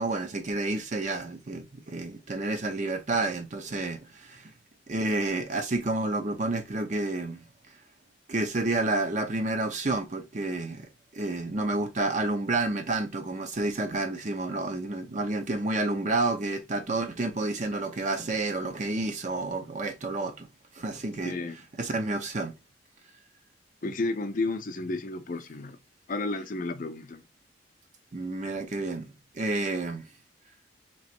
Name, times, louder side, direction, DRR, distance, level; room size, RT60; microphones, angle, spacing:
voice 1, 0.0-4.5 4.9-7.4 8.3-20.5 20.7-21.3 21.8-22.5 28.1-30.0, right 2 dB, 40° right, 0.6 m, -30 dB
voice 2, 21.2-21.6 23.8-25.8 26.1-27.2, left 2 dB, 45° left, 0.6 m, -32 dB
3.0 x 3.0 x 4.4 m
head